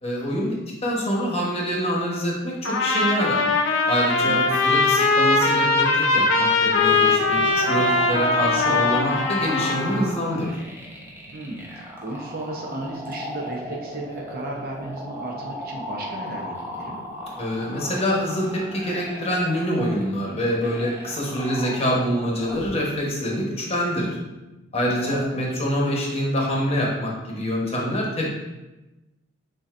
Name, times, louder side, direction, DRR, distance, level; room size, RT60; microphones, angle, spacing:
voice 1, 0.0-3.4 3.9-10.6 17.4-24.2 24.7-28.3, equal, 30° left, -3 dB, 1.0 m, -25 dB
Trumpet, 2.6-10.0, left 3 dB, 60° left, 0.5 m, -21 dB
voice 2, 4.1-4.4 11.3-17.0 24.9-25.2, right 2 dB, 45° right, -1 dB, 0.7 m, -34 dB
sound 1, 6.8-22.8, left 1 dB, 10° right, 0.7 m, -36 dB
7.3 x 2.7 x 2.5 m, 1.0 s
head